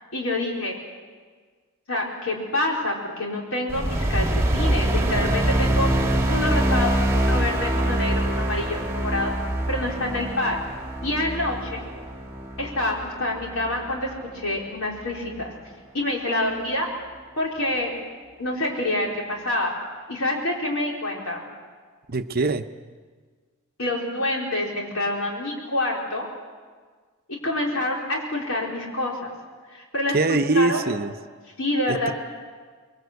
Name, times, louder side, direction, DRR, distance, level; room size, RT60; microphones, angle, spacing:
voice 1, 0.1-0.8 1.9-5.9 6.3-9.3 9.7-10.6 11.0-11.8 12.6-15.5 15.9-16.9 17.4-17.9 18.4-19.7 20.1-21.4 23.8-26.3 27.3-29.3 29.7-30.9 31.6-32.1, left 1 dB, 75° left, -1 dB, 4.6 m, -27 dB
sound 1, 3.7-14.2, right 1 dB, 15° right, 1.8 m, -24 dB
voice 2, 22.1-22.7 30.1-31.1 31.9-32.1, right 3 dB, 45° right, 7 dB, 0.8 m, -23 dB
25.0 x 22.5 x 8.2 m, 1.5 s
head